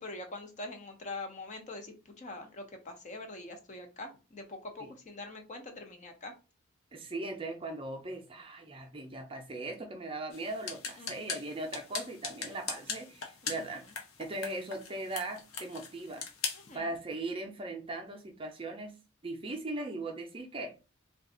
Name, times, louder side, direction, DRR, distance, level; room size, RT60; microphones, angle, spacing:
voice 1, 0.0-6.3 11.0-11.4 13.4-13.7 16.5-16.9, left 2 dB, 35° left, 0.6 m, -44 dB
voice 2, 6.9-13.8 14.2-16.2 16.7-19.0 19.2-20.7, right 2 dB, 25° right, 0.5 m, -39 dB
sound 1, 10.3-16.8, left 5 dB, 70° left, 0.8 m, -41 dB
2.5 x 2.3 x 3.7 m
head